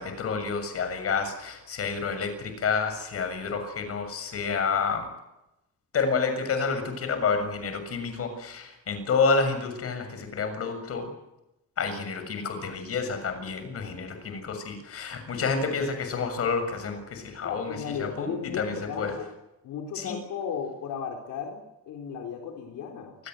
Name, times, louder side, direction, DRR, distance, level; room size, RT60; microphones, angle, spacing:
voice 1, 0.0-5.1 5.9-11.1 11.8-19.1 20.0-20.1, left 5 dB, 50° left, 8 dB, 6.9 m, -29 dB
voice 2, 17.4-19.3 19.6-23.2, left 7 dB, 85° left, 3 dB, 4.1 m, -35 dB
28.0 x 21.0 x 8.0 m, 0.91 s
cardioid pair, 150°, 31 cm